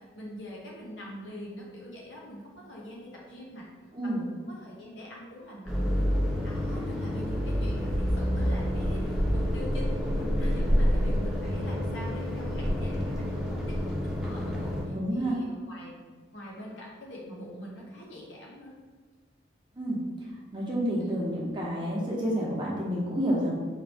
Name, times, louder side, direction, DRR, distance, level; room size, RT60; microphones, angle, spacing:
voice 1, 0.1-3.7 4.0-6.1 6.4-18.7 21.0-21.2, equal, 75° left, -4 dB, 1.1 m, -43 dB
sound 1, 5.7-14.8, equal, 5° right, 0.6 m, -28 dB
voice 2, 14.9-15.4 19.8-20.0 20.5-23.5, equal, 25° right, -5 dB, 0.9 m, -29 dB
4.7 x 3.0 x 3.5 m, 1.4 s
head